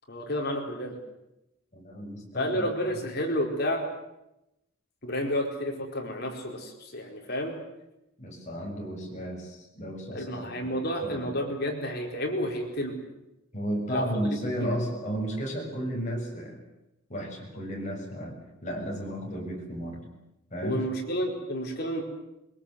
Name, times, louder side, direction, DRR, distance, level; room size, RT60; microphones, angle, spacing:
voice 1, 0.1-1.0 2.3-3.8 5.0-7.5 10.1-13.0 13.9-14.0 20.6-22.0, equal, 55° left, 1 dB, 4.6 m, -30 dB
voice 2, 1.7-2.7 8.2-10.3 10.6-10.7 11.0-11.3 13.5-16.6 17.1-20.1 20.5-20.9, equal, 40° left, 0 dB, 6.9 m, -33 dB
23.0 x 22.5 x 8.1 m, 0.90 s
head